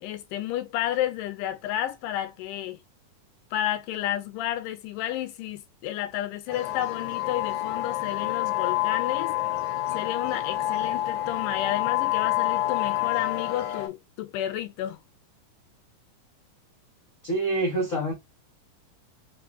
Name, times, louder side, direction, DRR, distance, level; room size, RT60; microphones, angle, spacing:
voice 1, 0.0-2.8 3.5-9.3 9.9-15.0, left 12 dB, 85° left, 2.2 m, -31 dB
sound 1, 6.5-13.9, left 15 dB, 65° left, 2.1 m, -28 dB
voice 2, 17.2-18.1, right 2 dB, 50° left, 1.0 m, -26 dB
5.0 x 2.4 x 2.3 m
omnidirectional pair, 3.7 m